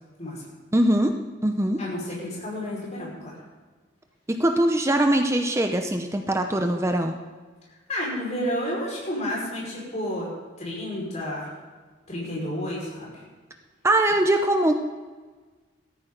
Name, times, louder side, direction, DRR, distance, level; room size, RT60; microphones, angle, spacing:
voice 1, 0.7-1.1 1.4-1.8 4.3-7.1 13.8-14.7, right 1 dB, 15° right, 4 dB, 0.7 m, -22 dB
voice 2, 1.8-3.4 7.9-10.3 10.6-11.5 12.1-13.1, equal, 35° left, -4 dB, 5.4 m, -31 dB
16.0 x 13.5 x 4.0 m, 1.4 s
head